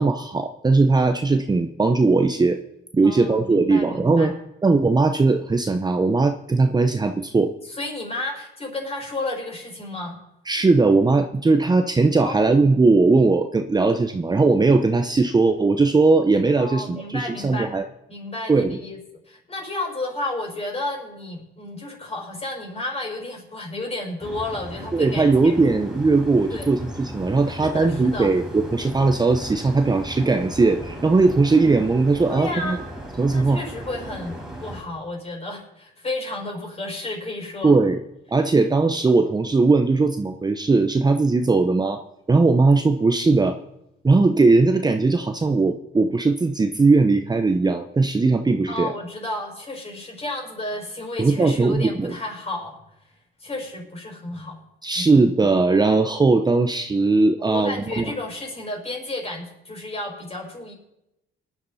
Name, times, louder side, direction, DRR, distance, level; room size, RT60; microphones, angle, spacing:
voice 1, 0.0-2.6 2.9-4.3 4.6-7.5 10.5-17.8 18.5-18.8 24.9-32.8 33.2-33.6 37.6-38.0 38.3-42.0 42.3-43.6 44.0-48.9 51.2-52.1 54.8-58.0, right 3 dB, 20° right, 7 dB, 0.8 m, -19 dB
voice 2, 3.0-4.3 7.6-10.2 12.2-12.7 16.6-17.7 18.1-19.0 19.3-25.8 26.5-26.7 27.6-28.3 32.3-32.8 33.3-37.8 48.7-52.8 53.4-54.6 55.0-55.1 57.4-60.7, left 2 dB, 30° left, 0 dB, 5.6 m, -32 dB
sound 1, 24.2-34.8, equal, 5° right, 4.3 m, -37 dB
18.5 x 11.0 x 4.2 m, 0.85 s
cardioid pair, 90°, 20 cm